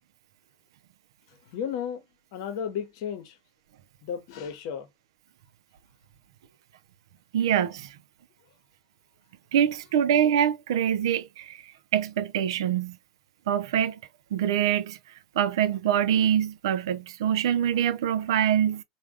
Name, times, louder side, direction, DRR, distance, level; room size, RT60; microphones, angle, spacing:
voice 1, 1.5-2.0 2.3-3.4 4.0-4.9, left 8 dB, 60° left, 0.9 m, -33 dB
voice 2, 7.3-8.0 9.5-11.6 11.9-13.0 13.5-14.0 14.3-15.0 15.4-18.8, right 9 dB, 70° right, 0.5 m, -24 dB
3.4 x 2.3 x 3.3 m
hypercardioid pair, 95°, 3 cm